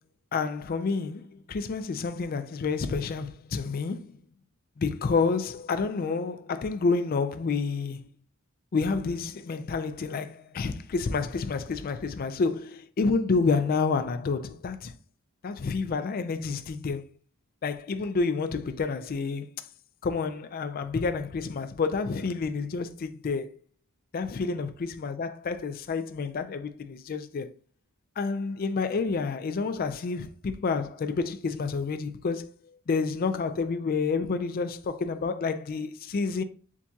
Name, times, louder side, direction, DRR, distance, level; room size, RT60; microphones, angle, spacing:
voice 1, 0.3-4.2 4.8-8.1 8.7-14.9 15.4-17.1 17.6-19.7 20.0-23.6 24.1-27.5 28.2-32.5 32.9-36.4, left 4 dB, 40° left, 0.4 m, -29 dB
7.2 x 2.7 x 2.3 m
head